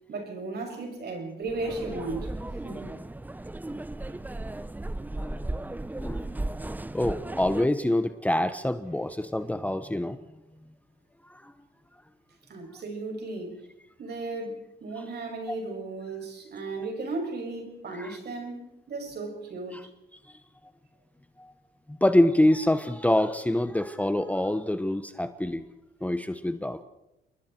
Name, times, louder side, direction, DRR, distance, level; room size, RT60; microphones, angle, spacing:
voice 1, 0.1-2.4 2.6-3.0 12.5-13.7 14.0-18.6 18.9-19.9, right 3 dB, 55° right, 6.9 m, -35 dB
sound 1, 1.5-7.7, right 2 dB, 10° right, 0.6 m, -35 dB
voice 2, 5.1-5.5 5.9-6.3 6.9-10.2 11.3-11.5 15.5-15.6 18.0-18.2 19.7-19.8 20.3-20.4 21.4-21.5 21.9-25.6 26.0-26.8, left 1 dB, 5° left, 1.1 m, -26 dB
29.0 x 22.0 x 4.5 m
cardioid pair, 90°, 20 cm